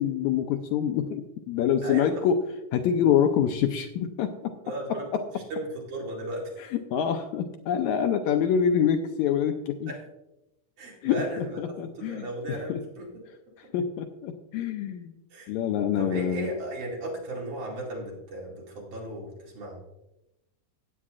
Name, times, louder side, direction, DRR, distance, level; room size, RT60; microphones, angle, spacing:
voice 1, 0.0-2.4 2.7-4.5 5.1-5.2 6.6-9.9 11.0-12.8 13.7-15.1 15.5-16.5, left 8 dB, 80° left, 6 dB, 1.7 m, -26 dB
voice 2, 1.8-2.2 4.6-5.1 5.3-6.6 9.9-10.0 10.8-11.6 12.0-13.1 15.3-15.5 16.0-19.8, right 1 dB, 70° right, -3 dB, 3.8 m, -35 dB
15.5 x 8.4 x 2.4 m, 0.92 s
omnidirectional pair, 3.7 m